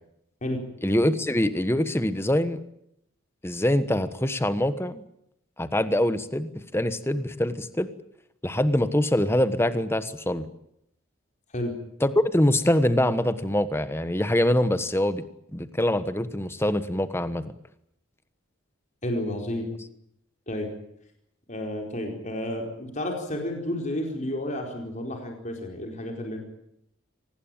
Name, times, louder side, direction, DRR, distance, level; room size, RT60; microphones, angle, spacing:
voice 1, 0.8-2.6 3.4-5.0 5.6-7.9 8.4-10.5 12.0-15.2 15.5-17.4, left 1 dB, 10° left, 12 dB, 1.3 m, -24 dB
voice 2, 19.0-19.7 20.5-20.7 21.5-26.4, left 1 dB, 35° left, 2 dB, 4.5 m, -31 dB
25.0 x 19.0 x 9.0 m, 0.76 s
head